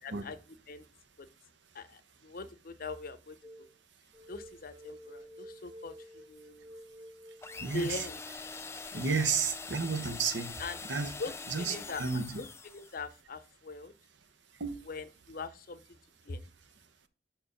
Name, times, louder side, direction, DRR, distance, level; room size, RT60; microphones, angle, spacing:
voice 1, 0.0-0.4 0.7-0.8 1.2-1.3 1.7-3.7 4.3-6.7 7.7-8.2 8.9-9.3 10.6-10.8 11.2-12.0 12.4-13.9 14.9-16.0 16.2-16.4, left 3 dB, 55° left, 0.6 m, -42 dB
sound 1, 3.4-3.7 4.1-7.9, equal, 20° right, 0.9 m, -51 dB
sound 2, 7.4-13.0, left 4 dB, 15° left, 0.4 m, -44 dB
voice 2, 7.6-8.0 8.9-10.5 10.9-11.1 11.5-12.3 14.6-14.8, right 5 dB, 70° right, 0.8 m, -32 dB
6.0 x 4.5 x 5.1 m
head